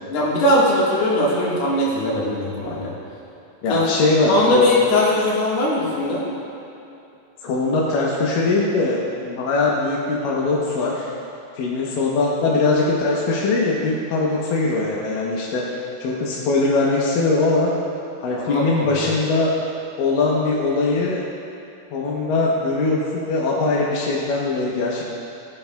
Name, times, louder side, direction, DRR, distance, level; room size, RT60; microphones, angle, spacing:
voice 1, 0.1-2.9 3.7-6.3 18.5-19.0, left 1 dB, 55° left, -6 dB, 2.1 m, -20 dB
voice 2, 3.6-4.7 7.4-11.1 11.6-17.7 18.2-19.5 20.0-21.2 21.9-25.1, left 3 dB, 70° left, -4 dB, 2.2 m, -21 dB
18.5 x 7.0 x 2.3 m, 2.7 s
omnidirectional pair, 4.8 m